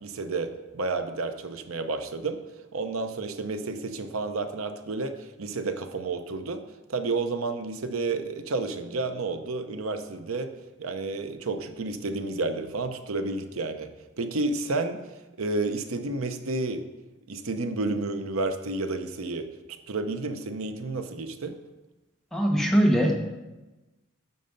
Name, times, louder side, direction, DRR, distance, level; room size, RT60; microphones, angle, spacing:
voice 1, 0.0-2.4 2.7-6.6 6.9-10.5 10.8-13.9 14.2-15.0 15.4-16.8 17.3-19.5 19.9-21.5, right 3 dB, 85° right, 8 dB, 0.8 m, -31 dB
voice 2, 22.3-23.2, equal, ahead, 0 dB, 1.1 m, -21 dB
9.5 x 6.7 x 5.3 m, 1.1 s
head